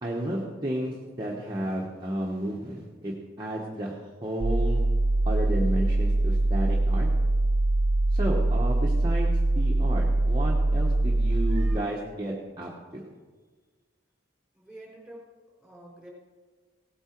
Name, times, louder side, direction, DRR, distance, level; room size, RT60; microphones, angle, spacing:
voice 1, 0.0-3.9 4.2-4.8 5.2-7.1 8.1-13.0, right 1 dB, 20° right, -4 dB, 1.2 m, -32 dB
sound 1, 4.4-11.8, right 2 dB, 40° right, 0.3 m, -23 dB
voice 2, 14.5-16.1, right 1 dB, ahead, -4 dB, 4.1 m, -48 dB
17.5 x 8.9 x 4.6 m, 1.4 s
head